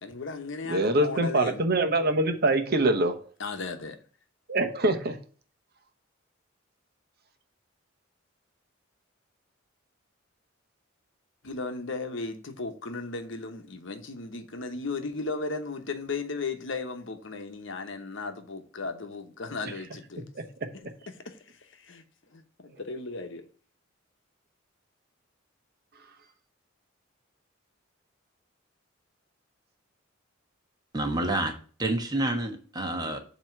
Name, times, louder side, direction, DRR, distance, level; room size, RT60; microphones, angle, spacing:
voice 1, 0.0-1.7 3.4-4.0 11.4-20.2 20.7-22.0 22.3-23.5, left 3 dB, 65° left, 0.9 m, -36 dB
voice 2, 0.7-3.2 4.5-5.2, right 2 dB, 50° right, 1.0 m, -24 dB
voice 3, 30.9-33.2, right 1 dB, 20° right, 1.2 m, -29 dB
7.6 x 3.0 x 5.9 m
head